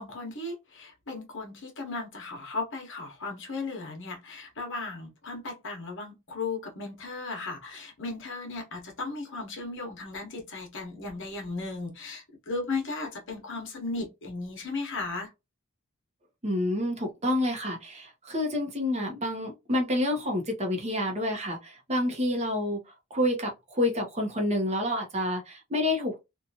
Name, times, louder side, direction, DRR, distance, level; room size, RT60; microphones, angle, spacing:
voice 1, 0.0-15.3, left 3 dB, 60° left, 1.0 m, -36 dB
voice 2, 16.4-22.8 23.1-26.2, left 1 dB, 30° right, 0.8 m, -28 dB
2.8 x 2.4 x 2.6 m
head